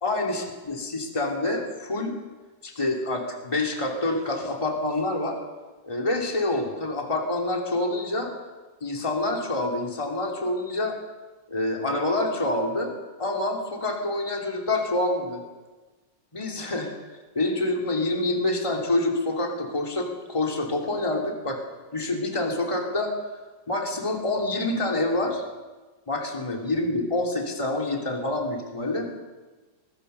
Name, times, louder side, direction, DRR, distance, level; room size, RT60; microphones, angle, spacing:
voice 1, 0.0-2.2 2.6-5.4 5.8-8.3 8.8-11.0 11.5-15.4 16.3-16.9 17.3-21.6 21.9-23.1 23.7-25.4 26.1-29.1, left 2 dB, 15° left, 1 dB, 2.8 m, -27 dB
22.0 x 19.5 x 6.8 m, 1.2 s
omnidirectional pair, 1.9 m